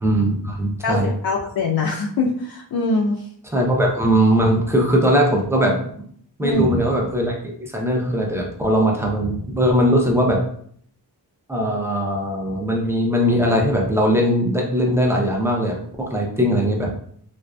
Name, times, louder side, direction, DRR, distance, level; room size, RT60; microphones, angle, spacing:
voice 1, 0.0-1.1 3.5-5.8 6.4-10.4 11.5-16.9, equal, 5° right, -1 dB, 0.5 m, -20 dB
voice 2, 0.8-3.2 6.4-6.6, left 3 dB, 60° left, -3 dB, 0.5 m, -23 dB
2.5 x 2.2 x 2.2 m, 0.62 s
cardioid pair, 70°, 42 cm